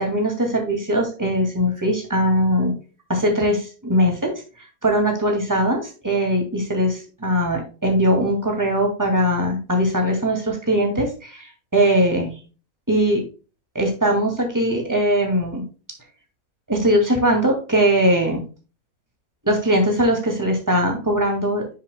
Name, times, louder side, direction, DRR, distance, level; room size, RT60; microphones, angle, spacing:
voice 1, 0.0-2.7 3.1-4.3 4.8-11.4 11.7-12.3 12.9-13.2 13.7-15.6 16.7-18.4 19.4-21.7, equal, 10° right, 2 dB, 2.3 m, -20 dB
9.5 x 6.8 x 2.3 m, 0.34 s
omnidirectional pair, 1.6 m